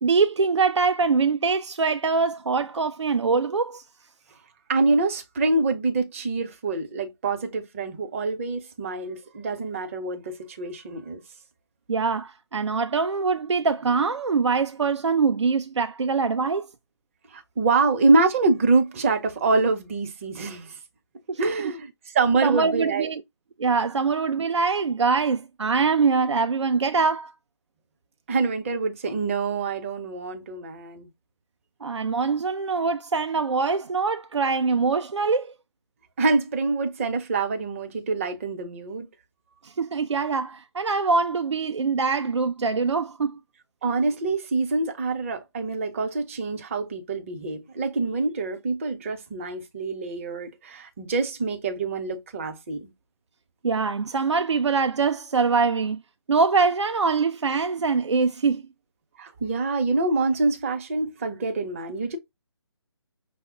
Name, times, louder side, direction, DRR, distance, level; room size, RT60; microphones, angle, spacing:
voice 1, 0.0-3.8 11.9-16.7 21.3-21.7 22.4-23.2 23.6-27.3 31.8-35.5 39.6-43.4 53.6-56.0 56.3-58.7, right 4 dB, 75° right, 0.4 m, -23 dB
voice 2, 4.7-11.2 17.3-20.8 21.4-21.9 22.1-23.1 28.3-31.1 36.2-39.1 43.8-52.9 59.2-62.2, right 3 dB, 30° right, 0.7 m, -25 dB
5.6 x 2.1 x 3.6 m
figure-of-eight pair, 145°, 15 cm